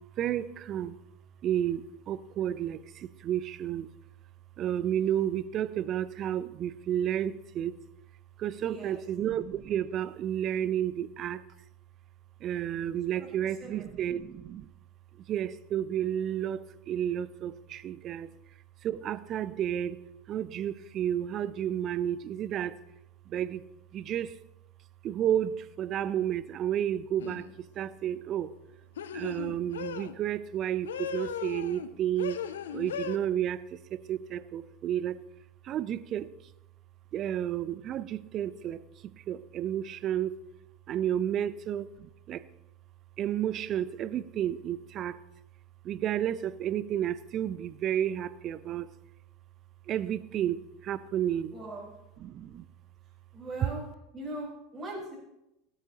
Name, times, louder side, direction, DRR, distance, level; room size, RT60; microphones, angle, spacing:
voice 1, 0.2-1.0 1.4-3.9 4.6-7.8 8.4-11.4 12.4-14.7 15.3-18.3 18.8-20.0 20.3-22.8 23.3-23.6 23.9-24.3 25.0-27.5 27.8-28.5 29.1-32.4 32.7-33.6 33.9-35.2 35.6-36.3 37.1-40.3 40.9-42.4 43.2-45.2 45.8-48.9 49.9-51.5 52.2-52.7, right 10 dB, 40° right, 16 dB, 0.6 m, -31 dB
voice 2, 8.6-9.0 12.9-13.9 51.5-51.9 53.3-53.8 54.1-55.2, right 2 dB, 20° right, -7 dB, 4.7 m, -41 dB
sound 1, 27.2-27.5 29.0-30.1 30.9-31.9 32.2-33.2, left 8 dB, 70° left, 0.6 m, -37 dB
17.0 x 13.0 x 2.9 m, 0.90 s
figure-of-eight pair, 75°, 0 cm